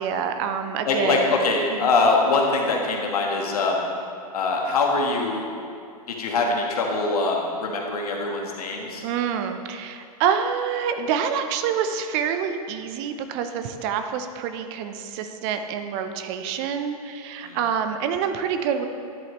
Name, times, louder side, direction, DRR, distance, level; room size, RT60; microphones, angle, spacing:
voice 1, 0.0-1.3 1.7-1.9 9.0-18.9, right 7 dB, 45° right, 8 dB, 0.6 m, -27 dB
voice 2, 0.8-3.8 4.3-5.5 6.1-9.0 17.4-17.6, left 3 dB, 75° left, 1 dB, 1.4 m, -23 dB
10.5 x 7.7 x 3.0 m, 2.4 s
hypercardioid pair, 110°, 19 cm